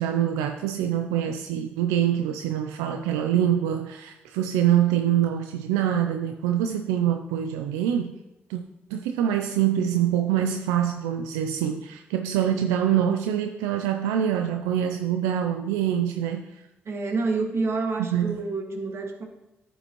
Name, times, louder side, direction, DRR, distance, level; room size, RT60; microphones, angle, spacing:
voice 1, 0.0-8.1 8.5-8.6 8.9-16.6 18.0-18.4, right 10 dB, 90° right, 5 dB, 0.4 m, -25 dB
voice 2, 16.9-19.2, right 3 dB, 60° right, 2 dB, 1.7 m, -28 dB
9.7 x 8.0 x 3.0 m, 0.98 s
hypercardioid pair, 45°, 5 cm